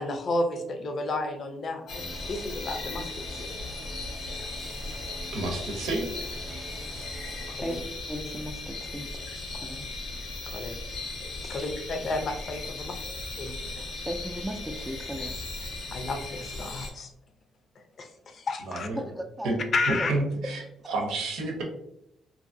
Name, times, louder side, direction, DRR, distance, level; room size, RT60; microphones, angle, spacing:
voice 1, 0.0-2.0 2.3-3.5 7.5-7.8 10.5-10.8 11.5-12.9 13.4-13.6 15.9-17.1 18.0-18.9 19.7-20.2, left 2 dB, 50° left, 6 dB, 0.5 m, -32 dB
sound 1, 1.9-16.9, left 2 dB, 85° left, 0.9 m, -37 dB
sound 2, 2.0-8.2, right 1 dB, 30° right, 0.8 m, -46 dB
voice 2, 5.3-6.1 18.7-19.0 19.4-19.6 19.9-21.6, right 2 dB, 85° right, 1 dB, 0.7 m, -30 dB
voice 3, 7.3-7.8 8.1-9.9 11.4-11.7 14.0-15.4 19.0-20.1, equal, 10° right, 4 dB, 0.3 m, -37 dB
2.7 x 2.6 x 2.6 m, 0.78 s
cardioid pair, 90°, 0 cm